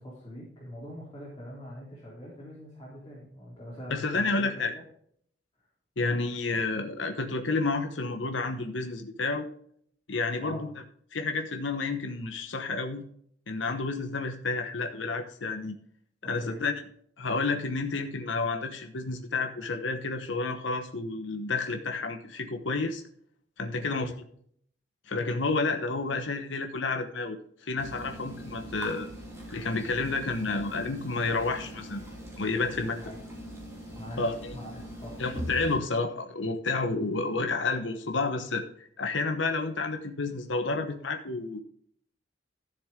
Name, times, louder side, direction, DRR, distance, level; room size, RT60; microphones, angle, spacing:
voice 1, 0.0-4.8 6.0-6.2 10.4-10.6 16.2-16.6 23.7-24.1 26.1-26.2 32.9-33.2 34.0-35.2, equal, 25° left, -7 dB, 3.5 m, -43 dB
voice 2, 3.9-4.7 6.0-9.5 10.1-10.7 11.1-13.0 13.5-15.8 16.2-16.7 17.2-23.0 23.6-24.1 25.1-27.4 27.6-29.1 29.5-32.0 32.4-33.0 34.2-34.5 35.2-41.6, left 3 dB, 85° left, 5 dB, 1.1 m, -30 dB
sound 1, 27.8-35.7, equal, 15° right, 3.3 m, -41 dB
13.0 x 7.1 x 3.7 m, 0.63 s
head